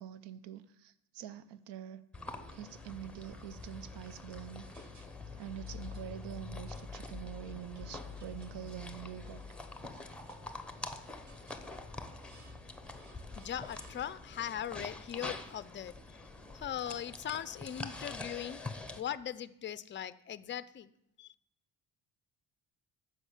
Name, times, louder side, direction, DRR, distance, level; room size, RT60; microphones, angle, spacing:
voice 1, 0.0-2.0 2.5-4.7 5.4-9.4 9.9-10.0, right 11 dB, 85° right, 15 dB, 0.7 m, -46 dB
sound 1, 2.1-19.0, left 3 dB, 5° left, 0.7 m, -45 dB
sound 2, 2.3-2.8 3.2-4.1 4.7-5.4 5.7-6.1 6.7-7.2 7.9-8.7 9.0-9.8 10.2-10.9 11.3-11.7 12.2-12.7 12.9-14.4, right 3 dB, 45° right, 1.7 m, -63 dB
voice 2, 13.4-15.9 16.5-18.6 19.0-20.9 21.2-21.3, left 10 dB, 30° left, 15 dB, 0.4 m, -39 dB
9.9 x 6.4 x 8.2 m, 0.74 s
cardioid pair, 165°, 41 cm